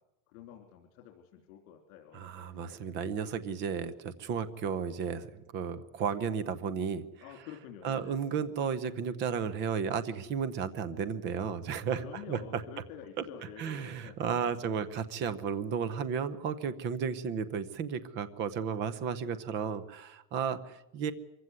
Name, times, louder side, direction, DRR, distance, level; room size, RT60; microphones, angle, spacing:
voice 1, 0.3-2.6 7.2-8.4 12.0-14.5, left 9 dB, 70° left, 2 dB, 3.5 m, -49 dB
voice 2, 2.1-7.0 7.8-12.4 13.6-21.1, right 6 dB, 25° right, 14 dB, 0.8 m, -33 dB
25.0 x 15.5 x 9.5 m, 0.91 s
cardioid pair, 180°, 43 cm